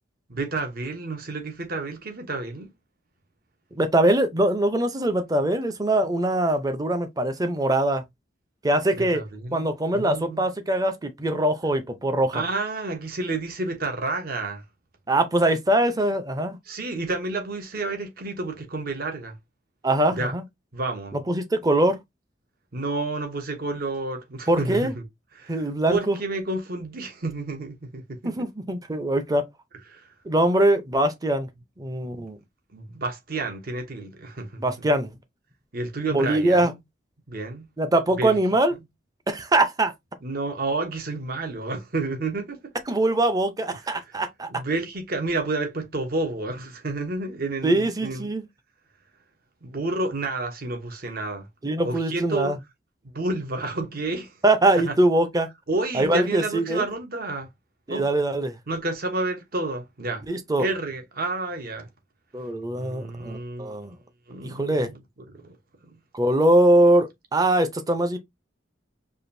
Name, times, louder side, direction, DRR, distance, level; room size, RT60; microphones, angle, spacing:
voice 1, 0.3-2.7 8.9-10.5 12.3-14.6 16.7-19.3 20.1-20.3 20.7-21.2 22.7-25.0 25.4-28.5 29.9-30.0 32.1-32.3 32.7-34.7 35.7-36.8 37.3-37.7 38.2-38.4 40.2-42.7 43.9-44.0 44.5-48.3 49.6-51.5 51.8-52.5 53.1-54.3 54.9-55.0 55.7-57.5 57.9-58.1 58.7-60.2 60.6-61.9 62.7-63.8 64.3-65.0 65.3-65.6, right 2 dB, 55° right, 1.0 m, -30 dB
voice 2, 3.7-8.0 8.6-9.2 9.5-12.4 15.1-16.6 19.8-20.4 21.1-22.0 24.5-24.9 25.5-26.2 28.2-29.4 30.2-31.5 31.8-32.4 34.6-35.1 36.1-36.7 37.8-38.7 39.3-39.9 42.9-44.5 47.6-48.5 51.6-52.6 54.4-55.5 55.9-56.8 57.9-58.6 60.3-60.7 62.3-64.0 64.4-64.9 66.1-68.2, right 1 dB, 20° right, 0.6 m, -22 dB
4.9 x 2.6 x 2.6 m
head